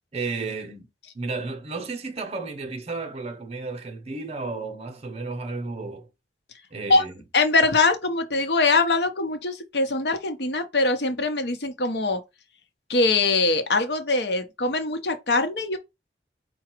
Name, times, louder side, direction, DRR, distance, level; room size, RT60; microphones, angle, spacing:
voice 1, 0.1-6.1 6.7-7.2, right 3 dB, 35° right, 0.7 m, -33 dB
voice 2, 7.3-12.2 12.9-15.8, left 3 dB, 65° left, 0.8 m, -22 dB
4.9 x 2.2 x 4.4 m
head